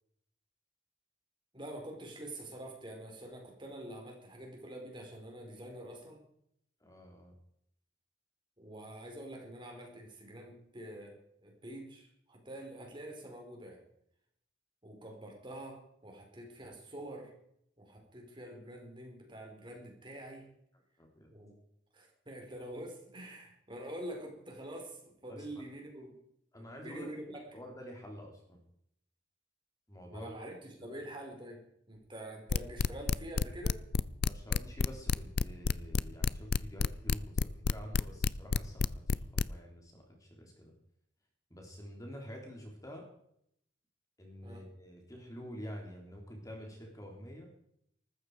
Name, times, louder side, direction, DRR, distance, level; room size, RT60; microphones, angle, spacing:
voice 1, 1.5-6.2 8.6-11.2 11.4-13.8 14.8-17.3 17.8-20.5 21.3-21.5 21.9-26.1 26.5-27.6 30.1-31.6 31.9-33.8 44.4-44.6, right 1 dB, 25° right, 1 dB, 4.5 m, -46 dB
voice 2, 6.8-7.3 21.0-21.3 25.3-25.4 26.5-27.2 27.5-28.6 29.9-30.3 30.9-31.0 34.2-39.2 39.5-40.7 41.5-43.0 44.2-47.5, equal, 20° left, 1 dB, 3.4 m, -48 dB
sound 1, 32.5-39.4, left 4 dB, 55° left, 0.5 m, -28 dB
19.5 x 14.5 x 4.9 m, 0.71 s
head